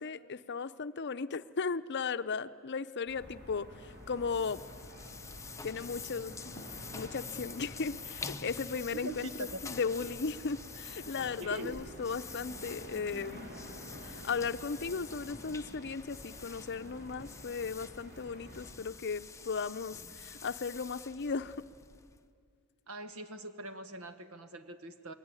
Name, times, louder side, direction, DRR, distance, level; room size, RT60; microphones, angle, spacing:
voice 1, 0.0-4.6 5.6-6.6 6.9-13.5 14.1-21.7, left 5 dB, 50° left, 12 dB, 0.6 m, -36 dB
sound 1, 3.1-18.7, equal, 50° right, 4.2 m, -50 dB
sound 2, 3.8-22.3, left 5 dB, 15° left, 0.7 m, -48 dB
voice 2, 8.9-9.6 11.4-11.8 22.9-25.1, right 1 dB, 80° right, 9 dB, 1.6 m, -42 dB
28.5 x 21.5 x 9.8 m, 2.2 s
head